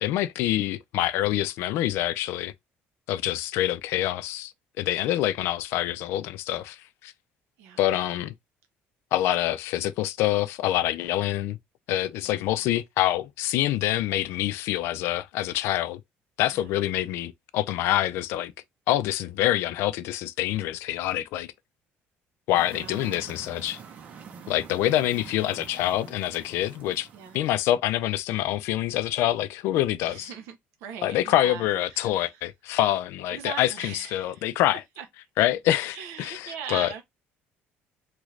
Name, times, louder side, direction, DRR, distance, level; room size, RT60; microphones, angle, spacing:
voice 1, 0.0-2.5 3.1-4.5 4.8-7.1 7.8-8.3 9.1-11.6 11.9-16.0 16.4-18.5 18.9-21.5 22.5-23.8 24.5-27.1 27.3-30.3 31.0-34.8 35.4-36.9, left 13 dB, 65° left, 0.4 m, -26 dB
voice 2, 12.2-12.7 16.4-16.7 22.7-23.3 27.1-27.4 30.1-32.4 33.3-34.5 35.0-35.1 35.9-37.0, right 7 dB, 80° right, 0.8 m, -41 dB
sound 1, 22.5-27.5, right 6 dB, 35° right, 0.6 m, -46 dB
2.9 x 2.5 x 3.2 m
cardioid pair, 170°, 4 cm